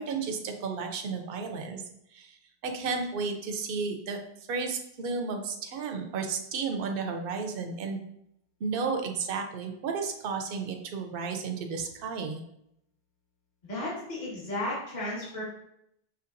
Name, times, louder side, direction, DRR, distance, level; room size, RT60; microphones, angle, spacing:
voice 1, 0.0-1.8 2.1-2.4 2.6-4.2 4.5-8.0 8.6-12.4, right 5 dB, 65° right, 4 dB, 0.8 m, -33 dB
voice 2, 13.6-15.4, left 1 dB, 45° left, -7 dB, 1.5 m, -34 dB
5.6 x 3.2 x 2.5 m, 0.76 s
omnidirectional pair, 1.0 m